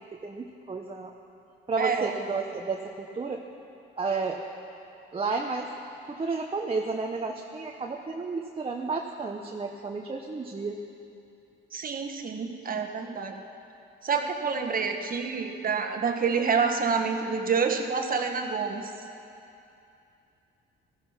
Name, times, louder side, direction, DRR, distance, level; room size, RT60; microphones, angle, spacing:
voice 1, 0.1-1.1 1.7-3.4 4.0-4.4 5.1-5.7 6.1-10.8, right 4 dB, 30° right, 1 dB, 1.1 m, -32 dB
voice 2, 1.8-2.1 11.7-13.4 14.0-18.9, right 5 dB, 45° right, 4 dB, 1.6 m, -28 dB
17.5 x 14.0 x 5.8 m, 2.7 s
cardioid pair, 90°, 20 cm